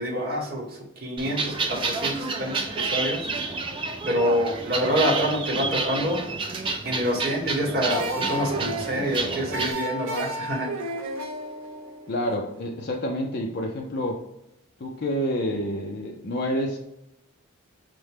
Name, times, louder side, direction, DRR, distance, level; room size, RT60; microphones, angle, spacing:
voice 1, 0.0-3.2 4.0-6.2 6.8-10.7, equal, 45° right, -1 dB, 1.1 m, -27 dB
sound 1, 1.2-9.7, right 3 dB, 25° right, 0.4 m, -29 dB
sound 2, 7.9-13.0, right 1 dB, 85° right, 0.7 m, -33 dB
voice 2, 12.1-14.2 14.8-16.8, equal, 50° left, 1 dB, 0.5 m, -28 dB
5.9 x 2.1 x 3.3 m, 0.86 s
head